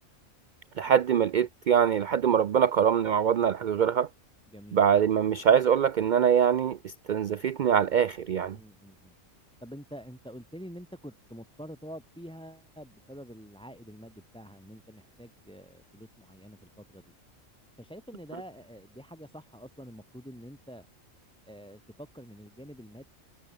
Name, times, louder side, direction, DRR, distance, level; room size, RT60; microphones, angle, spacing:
voice 1, 0.8-4.1 4.7-8.6, right 8 dB, 75° right, 0.4 m, -23 dB
voice 2, 4.5-4.8 8.5-9.1 9.6-17.1 17.8-20.9 21.5-23.0, equal, 5° left, 3.8 m, -46 dB
omnidirectional pair, 1.4 m